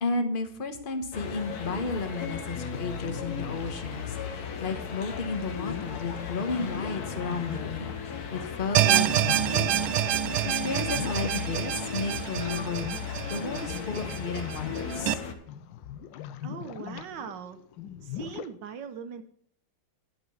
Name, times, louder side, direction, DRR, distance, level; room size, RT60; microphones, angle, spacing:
voice 1, 0.0-4.2 4.6-7.9 8.3-9.7 10.4-12.9 13.3-15.2, left 3 dB, 35° left, 7 dB, 1.1 m, -33 dB
sound 1, 1.1-15.3, left 7 dB, 55° left, 1.5 m, -36 dB
sound 2, 2.1-18.5, left 10 dB, 80° left, 1.3 m, -43 dB
sound 3, 8.7-15.1, right 13 dB, 90° right, 1.4 m, -27 dB
voice 2, 16.4-17.6 18.0-19.2, right 7 dB, 70° right, 9 dB, 1.4 m, -40 dB
11.0 x 5.9 x 6.4 m, 0.64 s
omnidirectional pair, 2.1 m